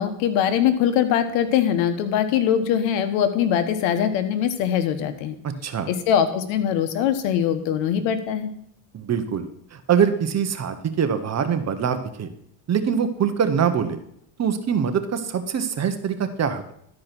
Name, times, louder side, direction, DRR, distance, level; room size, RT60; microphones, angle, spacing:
voice 1, 0.0-5.3 5.9-8.5, left 9 dB, 80° left, 10 dB, 1.2 m, -22 dB
voice 2, 5.4-5.9 8.9-12.3 12.7-14.0 14.4-16.7, right 7 dB, 35° right, 9 dB, 1.1 m, -24 dB
12.0 x 5.0 x 6.0 m, 0.71 s
cardioid pair, 110°, 45 cm